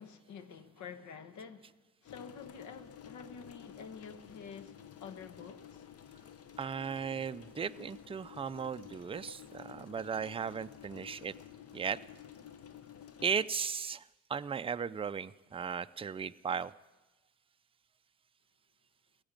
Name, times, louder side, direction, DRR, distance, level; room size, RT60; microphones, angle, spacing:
voice 1, 0.0-1.7 2.0-5.8, left 6 dB, 75° left, 1.2 m, -49 dB
sound 1, 2.0-13.5, left 9 dB, 50° left, 0.8 m, -52 dB
voice 2, 6.6-11.3 11.7-12.0 13.2-14.0 14.3-16.7, right 6 dB, 20° right, 0.4 m, -36 dB
15.5 x 8.2 x 8.9 m
cardioid pair, 90°, 30 cm